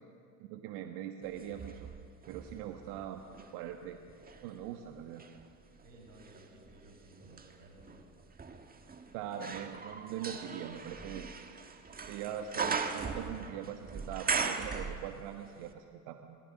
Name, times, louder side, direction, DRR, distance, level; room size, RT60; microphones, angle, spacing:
voice 1, 0.4-1.9 2.2-3.2 3.5-4.0 4.4-5.3 9.1-11.3 11.6-11.8 12.1-16.4, right 9 dB, 50° right, 6 dB, 1.4 m, -42 dB
sound 1, 1.3-3.5 4.1-15.4 15.7-15.8, right 5 dB, 20° right, 1.7 m, -39 dB
voice 2, 5.8-8.0, right 1 dB, 85° right, 0 dB, 6.7 m, -57 dB
27.5 x 19.0 x 6.4 m, 2.3 s
hypercardioid pair, 85°, 49 cm